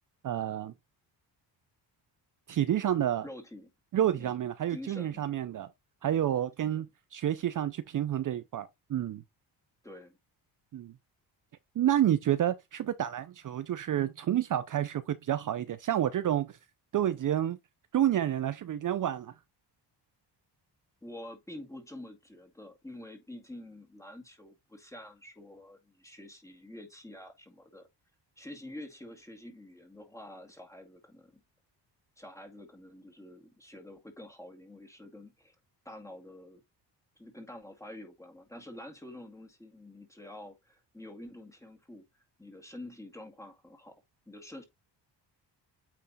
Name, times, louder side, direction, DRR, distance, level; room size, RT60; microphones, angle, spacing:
voice 1, 0.2-0.7 2.5-3.3 3.9-5.7 6.0-6.9 7.1-9.2 10.7-10.9 11.8-16.6 16.9-17.6 17.9-19.3, right 11 dB, 45° right, 0.6 m, -29 dB
voice 2, 3.2-3.7 4.1-4.4 4.7-5.3 6.6-6.8 9.8-10.2 21.0-27.9 28.4-31.4 32.2-35.6 35.8-36.6 37.2-44.0 44.3-44.6, left 1 dB, 5° left, 2.2 m, -47 dB
8.8 x 3.3 x 4.1 m
cardioid pair, 90°, 43 cm